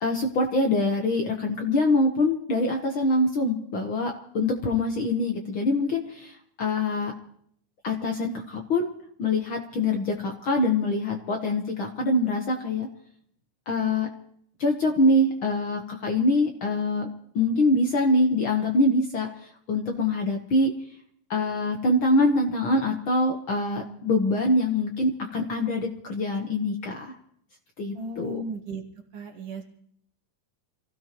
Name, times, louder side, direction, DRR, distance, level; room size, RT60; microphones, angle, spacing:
voice 1, 0.0-7.1 7.8-8.9 9.2-12.9 13.7-14.1 14.6-17.1 17.3-19.3 19.7-20.7 21.3-27.2 27.8-28.4, left 2 dB, 60° left, 2 dB, 1.3 m, -24 dB
voice 2, 27.9-28.8 29.1-29.6, right 1 dB, 50° right, 2 dB, 2.1 m, -35 dB
27.5 x 16.0 x 3.0 m, 0.68 s
omnidirectional pair, 4.0 m